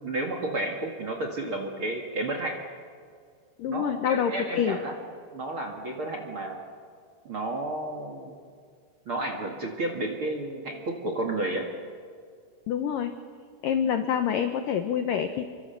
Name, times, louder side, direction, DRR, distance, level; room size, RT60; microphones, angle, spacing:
voice 1, 0.0-2.6 3.7-4.9 5.3-6.6 7.2-8.3 9.0-11.7, right 2 dB, 45° right, 3 dB, 1.8 m, -31 dB
voice 2, 3.6-4.8 12.7-13.2 13.6-15.4, left 8 dB, 85° left, 8 dB, 1.9 m, -26 dB
30.0 x 24.0 x 7.0 m, 2.1 s
omnidirectional pair, 5.4 m